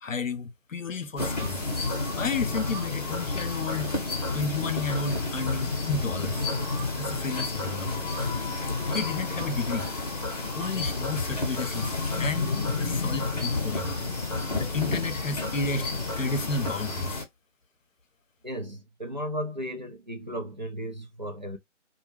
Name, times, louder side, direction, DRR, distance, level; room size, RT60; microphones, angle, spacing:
voice 1, 0.0-1.6 2.2-3.9 4.3-6.5 7.0-8.1 8.9-9.9 10.6-12.5 12.8-13.9 14.3-17.2, left 4 dB, 85° left, 0.6 m, -32 dB
sound 1, 1.2-17.2, left 3 dB, 30° left, 0.7 m, -30 dB
voice 2, 18.4-21.6, equal, 40° right, 0.4 m, -35 dB
2.1 x 2.1 x 3.2 m
figure-of-eight pair, 150°, 38 cm